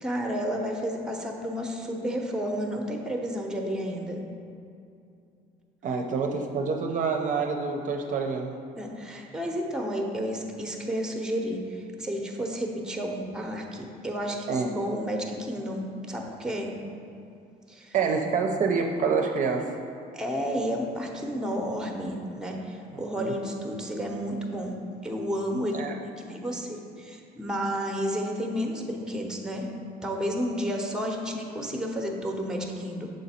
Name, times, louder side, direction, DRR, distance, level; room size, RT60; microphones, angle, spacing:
voice 1, 0.0-4.2 8.8-16.7 17.7-17.9 20.1-24.7 25.0-29.7 30.0-33.1, equal, 5° right, 2 dB, 0.7 m, -31 dB
voice 2, 5.8-8.5 14.5-14.7 17.9-19.8 22.9-23.3 25.7-25.9, right 5 dB, 50° right, 3 dB, 0.5 m, -27 dB
6.6 x 3.9 x 4.2 m, 2.6 s
cardioid pair, 110°, 17 cm